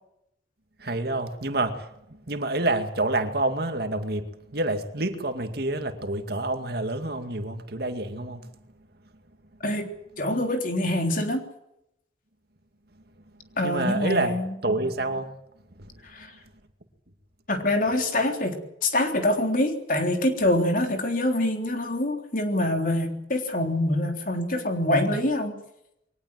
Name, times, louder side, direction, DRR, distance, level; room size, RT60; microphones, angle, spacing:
voice 1, 0.8-8.5 13.6-14.4 14.6-15.3 15.8-15.9, right 2 dB, 60° right, 2.3 m, -28 dB
voice 2, 10.2-11.4 13.6-14.6 16.1-16.3 17.5-25.6, left 1 dB, 50° left, 3.6 m, -25 dB
23.0 x 19.5 x 7.7 m
head